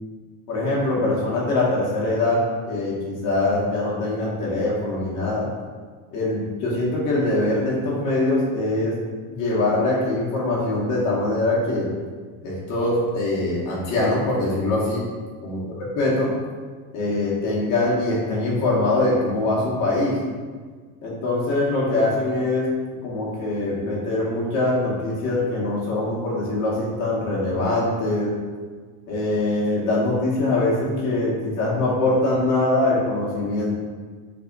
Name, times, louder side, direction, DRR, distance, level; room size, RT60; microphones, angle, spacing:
voice 1, 0.5-5.5 6.1-9.0 9.3-11.9 12.4-15.1 15.4-15.6 16.0-16.3 16.9-20.2 21.0-22.7 23.0-28.4 29.1-33.8, left 2 dB, 50° left, -5 dB, 1.2 m, -23 dB
3.5 x 2.6 x 3.9 m, 1.5 s
supercardioid pair, 115°, 42 cm